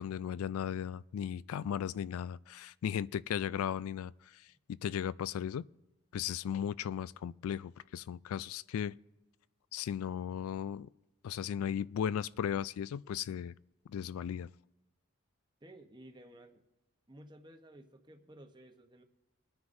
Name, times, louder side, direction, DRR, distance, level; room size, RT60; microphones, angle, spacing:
voice 1, 0.0-4.4 4.8-5.6 6.1-8.9 9.7-10.9 11.2-13.5 13.9-14.5, left 8 dB, 90° left, 0.3 m, -36 dB
voice 2, 15.6-16.6 17.1-19.0, right 1 dB, 20° right, 0.8 m, -55 dB
23.5 x 9.6 x 2.6 m
head